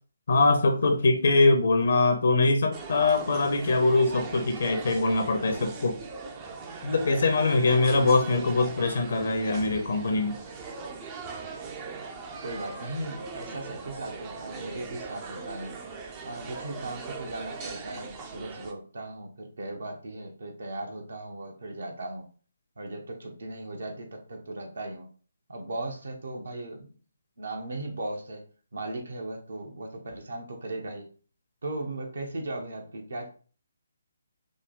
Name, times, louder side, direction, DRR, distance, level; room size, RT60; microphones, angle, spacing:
voice 1, 0.3-6.0 6.8-10.4, left 3 dB, 50° left, 6 dB, 0.7 m, -23 dB
sound 1, 2.7-18.7, right 4 dB, 20° right, 0.5 m, -40 dB
voice 2, 12.4-15.8 16.2-22.3 22.8-25.1 25.5-26.9 27.4-28.4 28.7-31.1 31.6-33.3, right 2 dB, 60° right, 3 dB, 1.0 m, -37 dB
5.1 x 2.2 x 3.5 m, 0.39 s
figure-of-eight pair, 140°, 0 cm